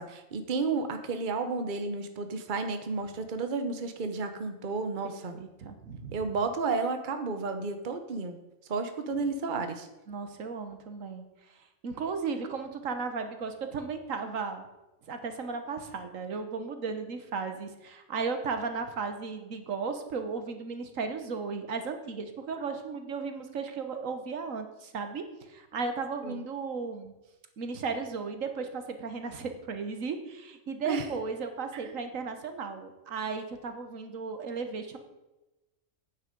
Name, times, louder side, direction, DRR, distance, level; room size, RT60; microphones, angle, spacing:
voice 1, 0.0-5.4 6.1-8.4 8.7-9.9 26.2-26.4 30.9-31.1 31.7-31.8, right 4 dB, 40° right, 7 dB, 1.0 m, -32 dB
voice 2, 5.3-6.2 10.1-14.7 15.1-27.1 27.6-35.0, right 5 dB, 80° right, 7 dB, 1.5 m, -35 dB
9.6 x 9.2 x 5.2 m, 1.0 s
omnidirectional pair, 1.4 m